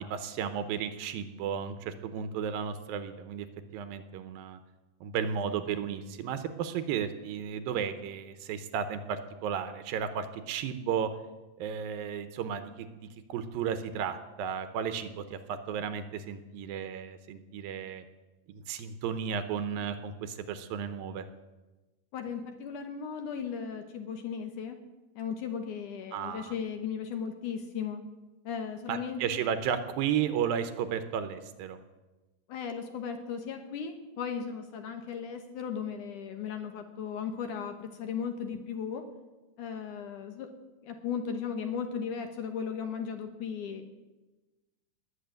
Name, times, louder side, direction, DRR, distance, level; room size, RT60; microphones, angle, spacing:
voice 1, 0.0-3.5 3.7-4.6 5.0-11.1 11.6-18.0 18.5-21.3 26.1-26.5 28.9-31.8, right 8 dB, 75° right, 10 dB, 2.5 m, -34 dB
voice 2, 22.1-24.8 25.2-28.0 28.4-29.2 32.5-39.1 39.6-40.5 40.8-44.0, left 7 dB, 65° left, 6 dB, 2.3 m, -36 dB
19.5 x 7.1 x 9.2 m, 1.1 s
omnidirectional pair, 4.5 m